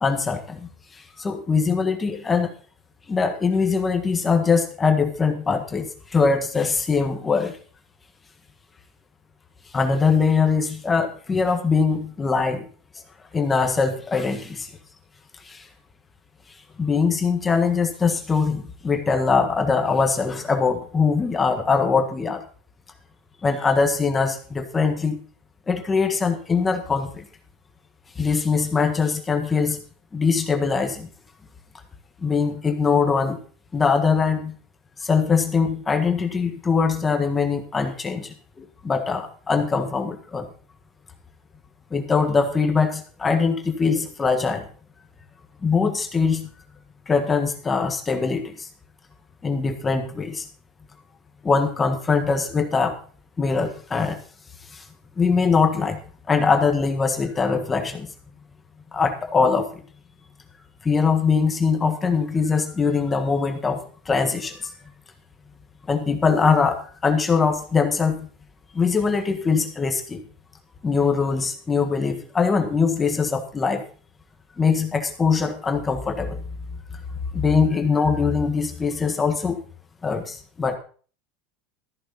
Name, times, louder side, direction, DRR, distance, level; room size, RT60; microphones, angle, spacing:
voice 1, 0.0-2.5 3.1-7.6 9.7-12.7 13.3-14.7 15.4-15.7 16.8-22.4 23.4-25.2 25.7-27.2 28.1-29.8 30.1-31.1 32.2-33.4 33.7-34.5 35.0-40.5 41.9-44.7 45.6-46.5 47.1-48.7 49.4-50.5 51.4-53.0 53.4-54.2 54.7-54.9 55.2-56.0 56.3-58.1 58.9-59.8 60.8-64.7 65.9-68.3 68.7-70.2 70.8-73.8 74.6-76.4 76.9-77.0 77.3-79.6 80.0-80.8, left 5 dB, 15° left, 5 dB, 1.5 m, -22 dB
14.0 x 11.0 x 4.1 m, 0.41 s
supercardioid pair, 155°, 0 cm